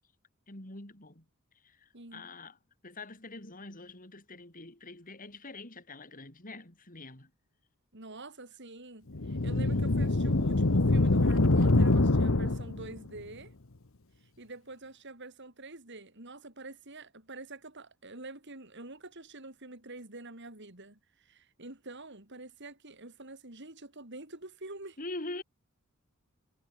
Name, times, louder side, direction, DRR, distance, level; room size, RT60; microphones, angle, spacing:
voice 1, 0.5-1.2 1.6-2.6 2.8-7.3 25.0-25.4, left 2 dB, 40° left, 4.8 m, -44 dB
voice 2, 1.9-2.3 7.9-13.5 14.2-25.0, right 2 dB, 60° right, 5.5 m, -47 dB
sound 1, 9.1-13.0, left 2 dB, 70° left, 1.3 m, -25 dB
head